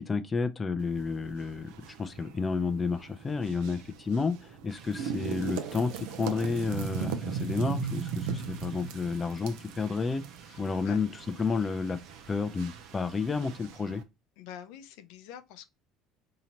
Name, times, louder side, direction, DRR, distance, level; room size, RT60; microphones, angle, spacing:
voice 1, 0.0-10.2 10.6-11.1 11.4-12.0 12.3-14.0, left 4 dB, 25° left, 0.4 m, -31 dB
sound 1, 0.8-14.0, right 7 dB, 80° right, 0.5 m, -39 dB
sound 2, 4.7-13.6, right 6 dB, 60° right, 0.9 m, -54 dB
voice 2, 10.4-11.0 14.4-15.6, left 9 dB, 75° left, 0.5 m, -47 dB
3.9 x 2.8 x 2.8 m
supercardioid pair, 95°, 0 cm